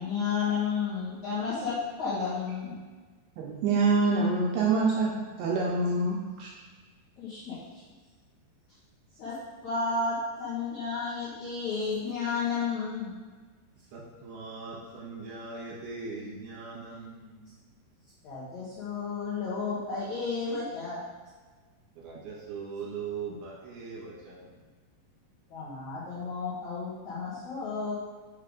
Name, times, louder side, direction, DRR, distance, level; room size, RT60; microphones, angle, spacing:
voice 1, 0.0-2.8 7.2-7.6 9.2-9.4 9.6-13.1 18.2-21.0 25.5-27.9, left 5 dB, 65° left, -12 dB, 1.9 m, -32 dB
voice 2, 3.4-5.1 5.4-6.5, right 3 dB, 90° right, -3 dB, 2.3 m, -25 dB
voice 3, 13.9-17.5 22.0-24.4, right 4 dB, 70° right, -6 dB, 2.9 m, -40 dB
6.7 x 3.3 x 5.1 m, 1.4 s
omnidirectional pair, 5.2 m